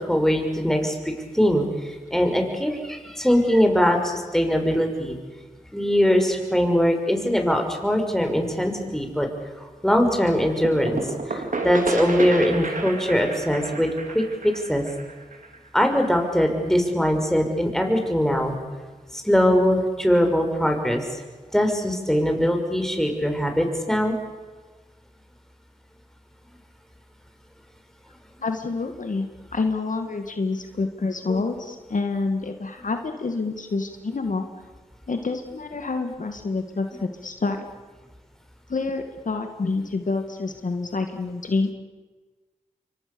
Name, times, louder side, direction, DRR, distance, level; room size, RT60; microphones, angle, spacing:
voice 1, 0.0-5.2 5.7-9.3 9.6-11.0 11.3-14.8 15.7-18.6 19.1-21.2 21.5-24.2 31.3-31.4, equal, 5° left, 4 dB, 5.9 m, -22 dB
sound 1, 10.6-16.2, right 3 dB, 70° right, 3.4 m, -31 dB
voice 2, 28.4-34.5 35.1-37.6 38.7-41.7, left 3 dB, 70° left, 6 dB, 2.1 m, -27 dB
28.5 x 24.0 x 7.1 m, 1.3 s
cardioid pair, 40°, 14 cm